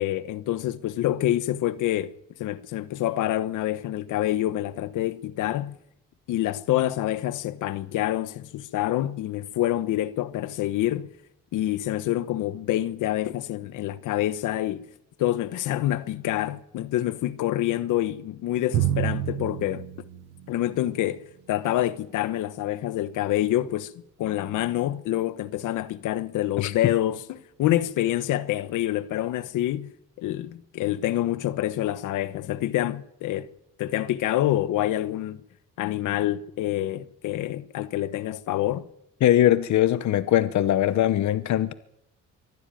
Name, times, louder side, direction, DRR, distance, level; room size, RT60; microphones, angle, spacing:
voice 1, 0.0-2.1 2.4-5.7 6.3-11.1 11.5-14.8 15.2-19.9 20.5-23.9 24.2-29.9 30.2-33.5 33.8-35.4 35.8-38.9, left 13 dB, 85° left, 1.2 m, -27 dB
Drum, 18.7-21.1, right 11 dB, 90° right, 1.2 m, -29 dB
voice 2, 39.2-41.7, left 12 dB, 70° left, 0.9 m, -21 dB
24.0 x 15.5 x 9.2 m
cardioid pair, 90°, 30 cm